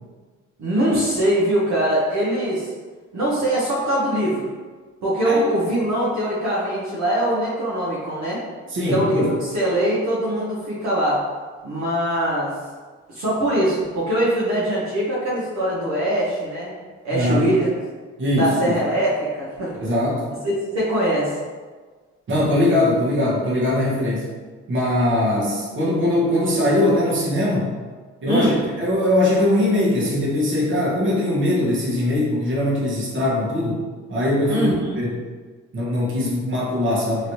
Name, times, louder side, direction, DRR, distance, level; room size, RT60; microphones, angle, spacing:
voice 1, 0.6-2.7 3.1-4.5 5.0-8.4 8.9-11.3 11.6-12.5 13.1-16.7 17.0-17.7 18.3-19.7 20.4-21.3 28.3-28.6 34.5-35.0, right 1 dB, 65° right, -7 dB, 0.9 m, -22 dB
voice 2, 8.7-9.3 17.1-17.4 18.2-18.8 19.8-20.3 22.3-24.3 24.7-27.7 28.2-33.8 34.1-34.7 34.9-35.2 35.7-37.3, left 1 dB, 40° right, -5 dB, 1.1 m, -21 dB
3.0 x 2.5 x 3.0 m, 1.4 s
cardioid pair, 90°, 30 cm